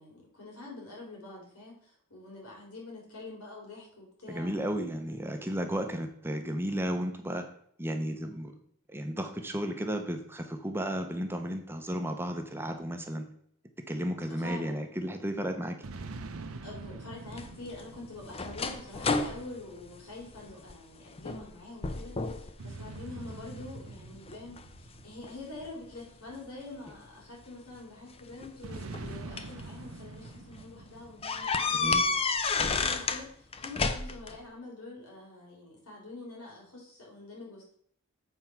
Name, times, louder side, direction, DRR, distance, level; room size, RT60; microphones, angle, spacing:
voice 1, 0.0-4.5 14.3-14.9 16.6-32.2 32.6-37.7, left 2 dB, 90° left, -2 dB, 3.6 m, -46 dB
voice 2, 4.3-7.4 7.8-8.5 8.9-13.3 13.9-15.8 31.8-32.0, equal, 10° right, 5 dB, 0.7 m, -33 dB
sound 1, 15.8-19.5 22.6-26.3 28.6-32.1, right 3 dB, 70° right, 0.7 m, -45 dB
sound 2, 17.3-20.8 21.2-21.5 21.8-22.5 22.9-23.7 24.3-25.7 26.9-27.0 28.2-29.6 30.1-30.3 30.6-30.7 31.2-33.2 33.5-34.4, left 4 dB, 25° left, 0.5 m, -31 dB
8.0 x 4.5 x 5.8 m, 0.64 s
head